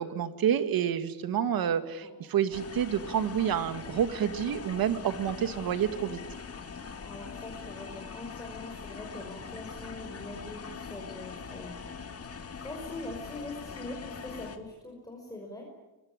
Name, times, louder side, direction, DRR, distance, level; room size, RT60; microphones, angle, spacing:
voice 1, 0.0-6.2, right 9 dB, 65° right, 10 dB, 2.2 m, -29 dB
sound 1, 2.5-14.6, left 6 dB, 35° left, 2.6 m, -42 dB
voice 2, 7.0-11.7 12.5-15.6, left 2 dB, 10° left, 0 dB, 5.8 m, -43 dB
24.5 x 23.0 x 9.9 m, 1.1 s
cardioid pair, 115°, 39 cm